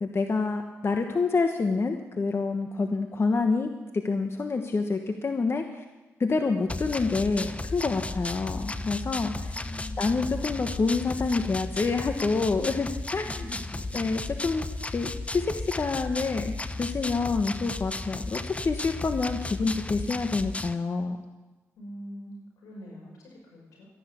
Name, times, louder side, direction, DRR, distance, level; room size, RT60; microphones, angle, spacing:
voice 1, 0.0-5.8 6.2-9.5 10.0-13.3 13.9-14.6 14.9-21.2, left 4 dB, 45° left, 5 dB, 1.2 m, -27 dB
sound 1, 6.7-20.7, left 2 dB, 20° left, 0.8 m, -34 dB
voice 2, 9.6-10.5 13.2-14.1 21.8-23.9, equal, 90° left, -1 dB, 6.0 m, -44 dB
13.5 x 11.0 x 8.4 m, 1.1 s
cardioid pair, 60°, 6 cm